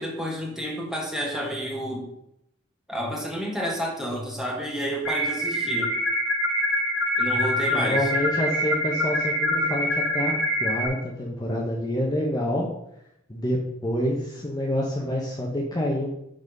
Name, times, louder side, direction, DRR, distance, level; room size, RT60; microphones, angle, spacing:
voice 1, 0.0-2.0 2.9-5.9 7.2-8.1, equal, 5° right, -2 dB, 2.0 m, -30 dB
sound 1, 5.0-10.9, equal, 85° left, 2.5 m, -25 dB
voice 2, 7.7-10.3 10.6-12.7 13.3-16.1, left 1 dB, 20° left, -2 dB, 1.2 m, -27 dB
10.5 x 4.2 x 5.4 m, 0.79 s
head